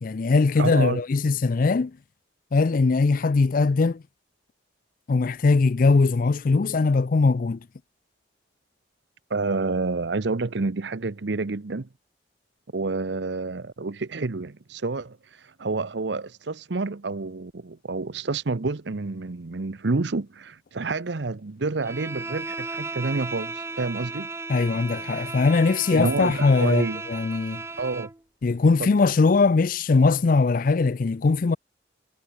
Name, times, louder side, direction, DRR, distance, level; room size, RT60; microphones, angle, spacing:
voice 1, 0.0-1.9 2.5-4.0 5.1-7.6 24.5-27.6 28.4-31.6, left 4 dB, 45° left, 0.4 m, -21 dB
voice 2, 0.6-1.0 9.3-11.9 12.7-24.3 24.7-24.8 25.1-25.3 25.9-27.0 27.8-28.1 28.8-28.9, right 3 dB, 65° right, 0.8 m, -29 dB
Bowed string instrument, 21.8-28.2, right 3 dB, 15° right, 0.6 m, -35 dB
head